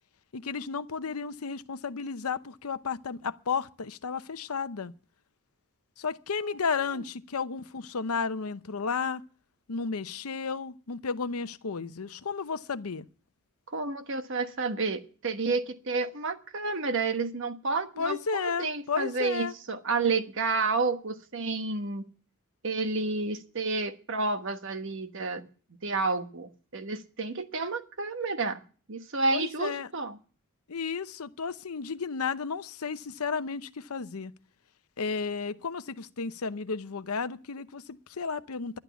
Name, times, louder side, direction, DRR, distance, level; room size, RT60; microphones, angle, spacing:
voice 1, 0.3-4.9 6.0-9.2 9.7-13.1 18.0-19.5 29.3-29.9 30.7-34.3 35.0-38.8, left 5 dB, 90° left, 0.8 m, -33 dB
voice 2, 13.7-22.0 22.6-25.5 25.8-28.6 28.9-30.2, right 3 dB, 60° right, 1.3 m, -30 dB
12.0 x 11.5 x 7.0 m
head